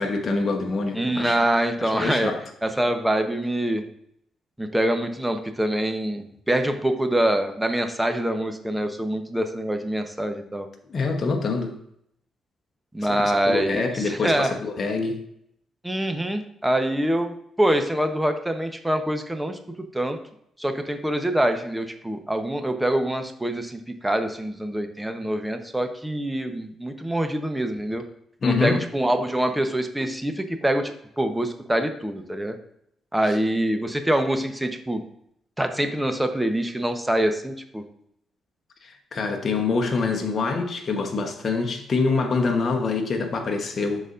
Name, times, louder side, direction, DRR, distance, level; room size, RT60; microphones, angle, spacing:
voice 1, 0.0-1.4 1.8-2.4 10.9-11.8 13.4-15.2 28.4-28.8 33.3-33.4 38.8-44.1, left 4 dB, 50° left, 3 dB, 1.0 m, -25 dB
voice 2, 0.9-2.3 2.6-3.8 4.6-10.7 12.9-14.5 15.8-19.6 19.9-20.2 20.6-28.0 28.4-32.6 33.1-35.0 35.6-37.8, right 1 dB, 10° right, 6 dB, 1.0 m, -25 dB
12.0 x 4.1 x 2.6 m, 0.72 s
cardioid pair, 70°, 0 cm